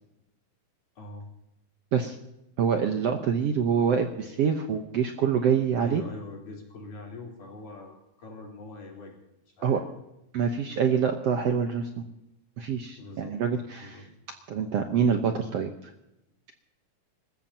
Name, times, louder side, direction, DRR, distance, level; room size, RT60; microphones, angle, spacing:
voice 1, 1.0-1.3 5.8-9.2 9.5-9.8 13.0-13.4 13.8-14.0, left 2 dB, 70° left, -2 dB, 5.4 m, -43 dB
voice 2, 2.6-6.0 9.6-9.8 10.3-12.0 12.6-14.0 14.5-15.9, right 7 dB, 65° right, 5 dB, 1.6 m, -26 dB
27.0 x 14.5 x 2.8 m, 0.89 s
omnidirectional pair, 3.8 m